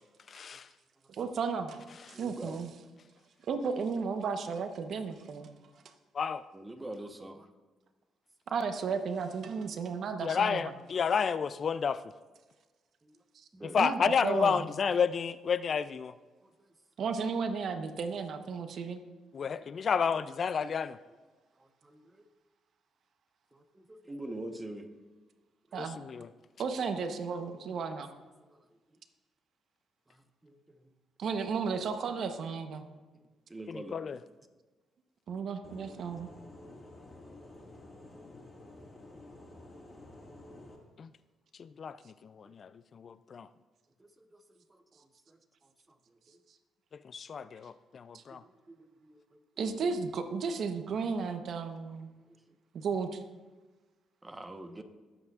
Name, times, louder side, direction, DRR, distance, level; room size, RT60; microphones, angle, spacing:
voice 1, 0.3-0.7 6.1-6.4 10.2-12.0 13.7-16.1 19.3-21.0 25.8-26.3 33.7-34.2 41.0-41.1 41.6-42.0 42.2-43.5 47.1-48.4, left 6 dB, 50° left, 15 dB, 0.3 m, -31 dB
voice 2, 1.1-1.8 2.1-2.7 3.5-5.5 8.5-10.7 13.8-14.6 17.0-19.0 25.7-26.0 26.6-28.1 31.2-32.9 35.3-36.3 48.1-48.2 49.6-52.1 52.7-53.2, right 5 dB, 60° right, 8 dB, 0.9 m, -34 dB
voice 3, 2.1-2.6 6.5-7.5 13.0-13.2 13.5-13.8 16.4-16.5 19.4-19.7 21.6-22.3 23.5-24.9 25.7-25.8 30.1-30.8 33.1-34.0 42.4-42.5 44.0-44.4 44.7-45.4 46.3-46.4 48.3-49.4 52.3-52.4 54.2-54.8, right 1 dB, 15° right, 6 dB, 1.0 m, -46 dB
sound 1, 35.6-40.8, left 2 dB, 30° left, 1.8 m, -51 dB
19.0 x 8.0 x 2.4 m, 1.3 s
cardioid pair, 90°, 0 cm